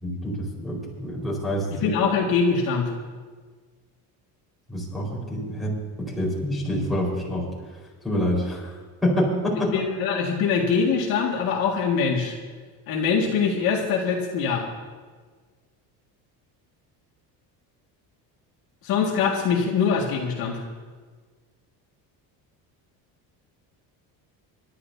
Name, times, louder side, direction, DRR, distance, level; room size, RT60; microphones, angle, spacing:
voice 1, 0.0-1.9 4.7-7.4 8.0-8.7 9.0-9.7, equal, ahead, -7 dB, 4.4 m, -27 dB
voice 2, 1.7-2.9 9.7-12.4 12.9-14.7 18.8-20.7, left 5 dB, 65° left, -1 dB, 2.0 m, -23 dB
27.5 x 12.5 x 2.7 m, 1.5 s
cardioid pair, 165°, 39 cm